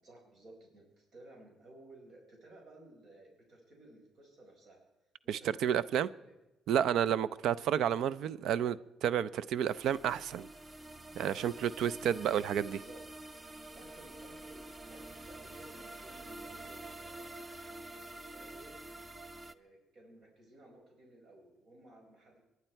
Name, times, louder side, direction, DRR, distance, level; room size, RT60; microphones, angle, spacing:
voice 1, 0.0-4.8 5.2-6.4 12.5-13.0 13.7-17.5 17.9-18.7 19.5-22.4, right 1 dB, 60° right, 4.7 m, -57 dB
voice 2, 5.3-6.1 6.7-10.5 11.2-12.8, right 9 dB, 80° right, 0.5 m, -31 dB
sound 1, 9.7-19.5, right 1 dB, 20° right, 0.7 m, -48 dB
25.0 x 11.0 x 4.5 m
cardioid pair, 90°, 0 cm